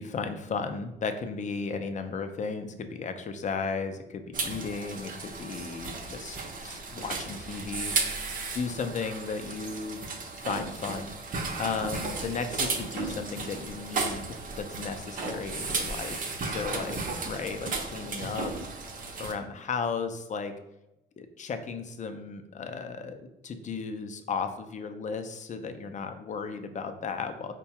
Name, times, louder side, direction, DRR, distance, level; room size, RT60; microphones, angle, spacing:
voice 1, 0.0-7.9 8.5-10.0 10.4-11.2 11.6-14.2 14.6-17.0 17.2-18.5 19.2-20.5 21.2-27.5, left 5 dB, 40° left, 7 dB, 0.4 m, -35 dB
sound 1, 4.3-19.3, right 3 dB, 45° right, 0.6 m, -34 dB
4.5 x 2.2 x 2.8 m, 0.90 s
cardioid pair, 90°, 20 cm